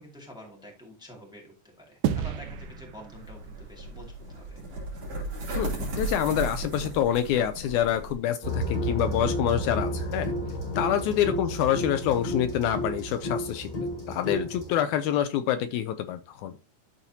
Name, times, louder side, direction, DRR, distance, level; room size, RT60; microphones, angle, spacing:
voice 1, 0.0-4.6 10.8-11.0, left 1 dB, ahead, -1 dB, 1.9 m, -48 dB
sound 1, 2.0-4.7, right 9 dB, 80° right, 1.7 m, -33 dB
sound 2, 3.1-8.1, right 2 dB, 60° right, 3.7 m, -35 dB
voice 2, 5.6-10.3 10.8-16.5, left 10 dB, 80° left, 11 dB, 1.9 m, -27 dB
sound 3, 8.4-14.7, equal, 15° left, 1.3 m, -31 dB
12.5 x 4.2 x 2.8 m, 0.32 s
omnidirectional pair, 3.5 m